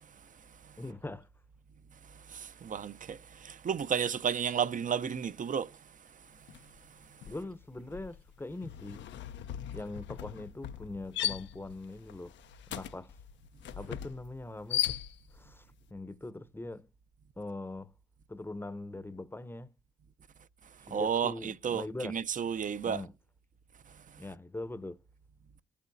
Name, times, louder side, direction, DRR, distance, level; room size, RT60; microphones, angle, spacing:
voice 1, 0.8-1.3 7.3-9.1 9.7-12.3 12.7-13.1 13.8-15.0 15.3-16.9 17.4-17.9 18.3-19.7 20.8-22.1 22.8-23.1 24.2-25.0, left 2 dB, 10° left, 0.7 m, -42 dB
voice 2, 2.3-3.2 3.4-5.7 20.9-23.0, right 7 dB, 40° right, 0.6 m, -32 dB
sound 1, 6.5-6.8 7.1-15.5, left 11 dB, 70° left, 0.6 m, -38 dB
20.0 x 8.5 x 2.6 m
supercardioid pair, 60°, 20 cm